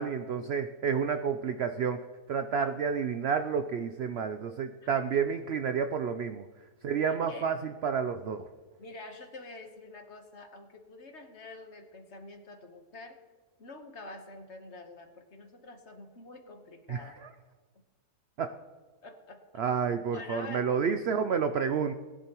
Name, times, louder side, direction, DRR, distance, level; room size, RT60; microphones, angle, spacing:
voice 1, 0.0-2.0 2.3-6.5 6.8-8.4 16.9-17.3 18.4-18.5 19.6-21.9, right 6 dB, 70° right, 9 dB, 0.6 m, -30 dB
voice 2, 7.1-7.5 8.8-13.2 13.6-17.2 19.0-19.4 20.1-20.7, left 2 dB, 50° left, 5 dB, 1.4 m, -47 dB
19.0 x 10.5 x 3.0 m, 1.3 s
omnidirectional pair, 1.7 m